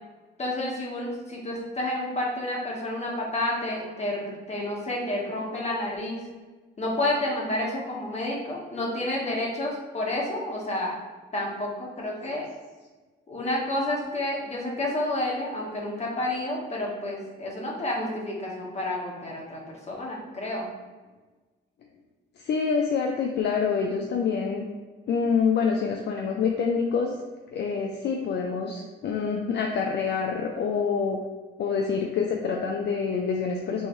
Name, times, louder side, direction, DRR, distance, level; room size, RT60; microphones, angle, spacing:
voice 1, 0.4-6.2 6.8-10.9 11.3-12.5 13.3-19.6 19.9-20.7, left 1 dB, 35° left, -3 dB, 1.4 m, -30 dB
voice 2, 22.4-24.7 25.1-27.1 27.5-31.2 31.6-33.9, left 5 dB, 60° left, 1 dB, 0.5 m, -26 dB
5.4 x 3.0 x 3.1 m, 1.3 s
cardioid pair, 90°, 20 cm